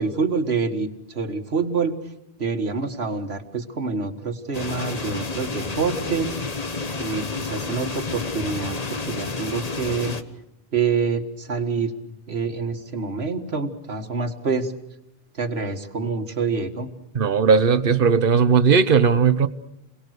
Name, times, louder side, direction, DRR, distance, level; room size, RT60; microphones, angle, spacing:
voice 1, 0.0-2.0 2.4-6.3 7.0-8.8 9.1-10.2 10.7-14.7 15.3-16.9, right 4 dB, 80° right, 2.1 m, -26 dB
sound 1, 4.5-10.2, left 3 dB, 40° left, 1.4 m, -30 dB
voice 2, 17.1-19.5, right 6 dB, 60° right, 1.2 m, -17 dB
29.5 x 22.5 x 6.6 m
omnidirectional pair, 1.1 m